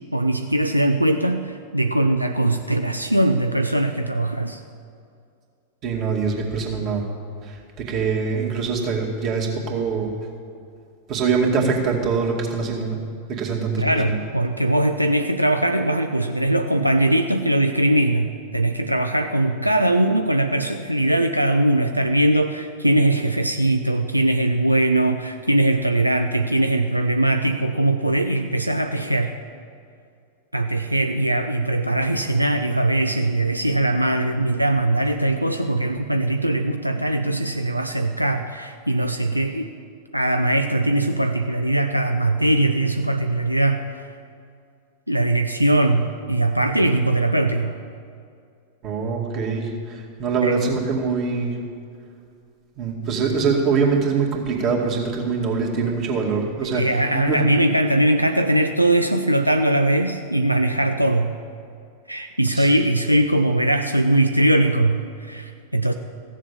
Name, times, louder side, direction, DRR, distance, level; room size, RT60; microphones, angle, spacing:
voice 1, 0.1-4.6 13.8-29.3 30.5-39.7 40.1-43.8 45.1-47.8 50.4-50.6 56.6-61.3 62.1-65.9, right 1 dB, 90° right, 6 dB, 0.5 m, -21 dB
voice 2, 5.8-7.0 7.4-10.1 11.1-13.0 13.3-14.2 48.8-51.6 52.8-56.8 57.1-57.4 62.5-62.7, right 5 dB, 35° right, -1 dB, 2.2 m, -23 dB
15.0 x 7.4 x 6.9 m, 2.3 s
figure-of-eight pair, 90°, 0 cm